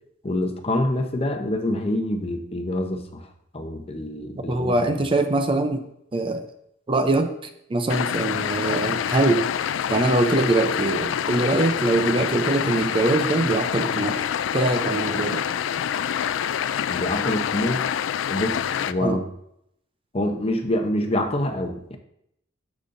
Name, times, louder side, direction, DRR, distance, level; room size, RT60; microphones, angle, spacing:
voice 1, 0.2-3.3 3.5-4.7 16.9-17.9 18.3-19.2 20.1-22.0, left 1 dB, 30° left, 5 dB, 0.7 m, -26 dB
voice 2, 4.5-6.4 6.9-7.3 7.7-9.5 9.9-14.2 14.5-15.4 19.0-19.2, right 2 dB, 30° right, 7 dB, 0.5 m, -23 dB
sound 1, 7.9-18.9, left 9 dB, 85° left, 0.3 m, -26 dB
10.5 x 7.1 x 2.6 m, 0.77 s
head